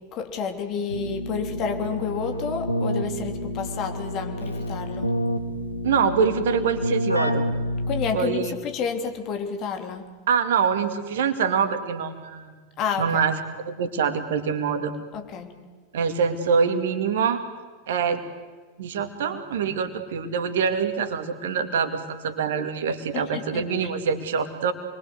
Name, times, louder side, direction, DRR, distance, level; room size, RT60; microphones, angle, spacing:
voice 1, 0.1-5.1 7.9-10.0 12.8-13.2 15.1-15.5 23.1-23.9, left 6 dB, 35° left, 5 dB, 3.5 m, -30 dB
Keyboard (musical), 0.9-8.5, left 1 dB, 85° left, 1.7 m, -29 dB
voice 2, 5.8-7.4 8.1-8.5 10.3-12.5 13.0-14.9 15.9-17.4 17.9-18.2 18.8-24.7, right 6 dB, 60° right, 9 dB, 2.3 m, -25 dB
28.0 x 22.5 x 7.9 m, 1.4 s
figure-of-eight pair, 90°, 0 cm